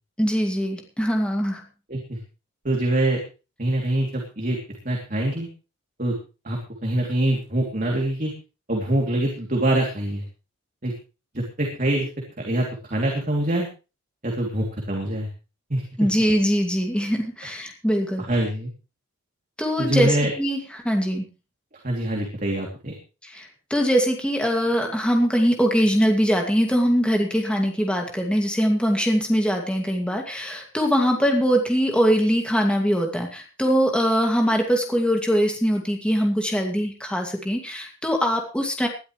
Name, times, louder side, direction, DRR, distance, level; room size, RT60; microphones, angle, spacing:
voice 1, 0.2-1.6 16.0-18.3 19.6-21.2 23.2-38.9, equal, 5° left, 2 dB, 2.3 m, -22 dB
voice 2, 2.6-3.2 3.6-4.6 4.8-5.5 6.0-6.1 6.4-8.3 8.7-10.2 10.8-10.9 11.3-12.1 12.4-13.7 14.2-15.3 15.7-15.8 18.2-18.7 19.8-20.3 21.8-22.9, right 1 dB, 35° right, 0 dB, 3.1 m, -24 dB
19.5 x 12.5 x 3.3 m, 0.32 s
head